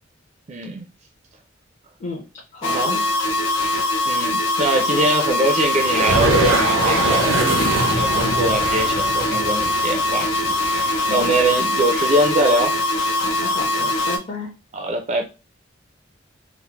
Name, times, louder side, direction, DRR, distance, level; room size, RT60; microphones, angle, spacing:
voice 1, 0.5-0.9 2.7-2.9 4.1-7.5 7.7-12.7 14.7-15.2, right 1 dB, 40° right, 3 dB, 0.4 m, -23 dB
voice 2, 2.5-3.1 4.9-5.0 10.9-11.3 13.2-14.5, left 2 dB, 40° left, -5 dB, 0.8 m, -32 dB
sound 1, 2.6-14.2, left 1 dB, 80° left, 0.7 m, -22 dB
sound 2, 5.8-11.4, right 2 dB, 90° right, 0.7 m, -23 dB
3.2 x 2.0 x 2.9 m, 0.29 s
head